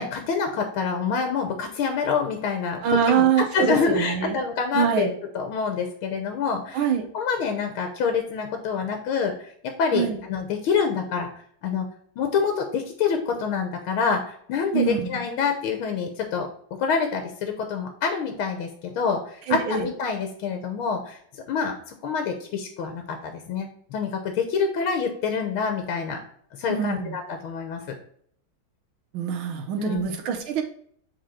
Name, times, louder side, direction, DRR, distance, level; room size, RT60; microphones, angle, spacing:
voice 1, 0.0-2.8 3.1-5.1 5.4-6.8 7.1-11.3 11.6-11.9 12.2-16.5 16.8-18.7 19.0-21.2 21.5-21.7 22.0-26.2 26.6-28.0 29.8-30.0, left 6 dB, 80° left, 5 dB, 1.7 m, -26 dB
voice 2, 2.8-4.4 4.7-5.1 6.7-7.1 9.9-10.2 14.7-15.1 19.5-19.9 26.7-27.1 29.1-30.6, right 8 dB, 80° right, 4 dB, 1.7 m, -24 dB
6.7 x 3.9 x 4.1 m, 0.63 s
omnidirectional pair, 2.2 m